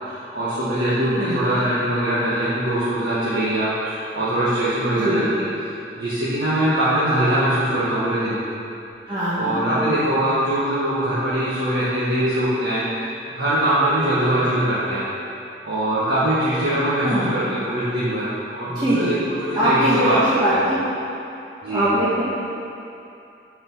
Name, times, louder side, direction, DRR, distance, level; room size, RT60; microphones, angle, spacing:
voice 1, 0.0-5.3 6.0-8.5 9.4-15.0 15.6-19.2 19.5-20.2 20.5-20.7 21.6-21.9, right 1 dB, 80° right, -11 dB, 1.4 m, -22 dB
voice 2, 9.1-9.9 17.0-17.3 18.7-19.2 19.5-20.8 21.5-22.2, right 1 dB, 25° right, -12 dB, 1.2 m, -22 dB
6.0 x 5.3 x 5.4 m, 2.7 s
head